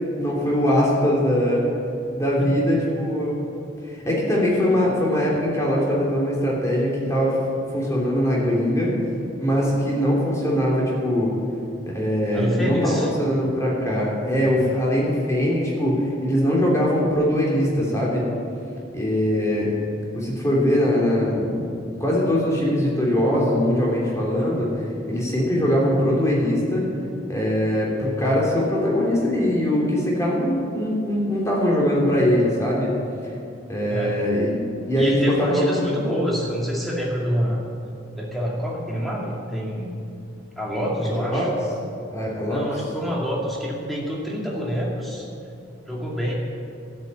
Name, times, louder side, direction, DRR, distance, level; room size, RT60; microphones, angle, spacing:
voice 1, 0.2-1.7 2.1-3.4 4.0-7.4 7.7-8.9 9.4-11.3 11.9-18.2 18.9-19.7 20.1-24.8 25.1-26.8 27.3-32.9 33.7-35.6 41.3-41.5 42.1-42.7, equal, 15° left, -4 dB, 3.2 m, -21 dB
voice 2, 2.4-2.8 12.3-13.1 33.9-34.2 35.0-37.6 38.1-40.0 40.6-41.5 42.5-45.3 45.9-46.3, equal, ahead, -4 dB, 2.3 m, -27 dB
12.5 x 8.4 x 9.7 m, 2.5 s
head